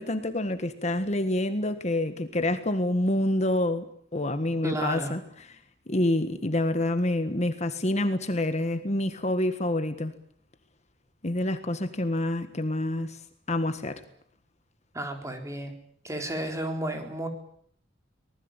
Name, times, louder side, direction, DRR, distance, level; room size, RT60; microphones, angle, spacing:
voice 1, 0.0-3.9 4.1-5.2 5.9-10.1 11.2-13.2 13.5-14.0, left 1 dB, 40° left, 1.6 m, -27 dB
voice 2, 4.6-5.1 14.9-15.7 16.0-17.3, right 1 dB, 15° right, 4.2 m, -32 dB
25.5 x 20.0 x 9.1 m
head